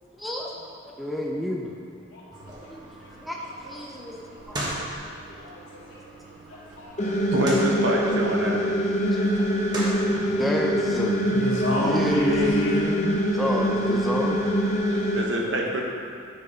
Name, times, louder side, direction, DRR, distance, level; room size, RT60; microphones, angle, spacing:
voice 1, 0.2-0.5 0.8-1.7 2.7-4.7 6.5-6.6 9.1-9.5 9.9-11.5 11.8-12.8 13.3-14.4, equal, ahead, -2 dB, 0.4 m, -31 dB
sound 1, 2.3-14.3, right 1 dB, 20° right, 1.1 m, -40 dB
voice 2, 5.3-5.6 5.9-6.0 6.5-7.2 9.2-9.4 9.7-10.0 11.2-13.1 14.9-15.5, left 1 dB, 80° left, -6 dB, 2.0 m, -30 dB
sound 2, 7.0-15.2, equal, 35° left, 0.8 m, -24 dB
voice 3, 7.3-8.6 10.2-10.3 15.1-15.8, right 1 dB, 60° right, -1 dB, 1.1 m, -26 dB
8.0 x 4.6 x 5.5 m, 2.5 s
head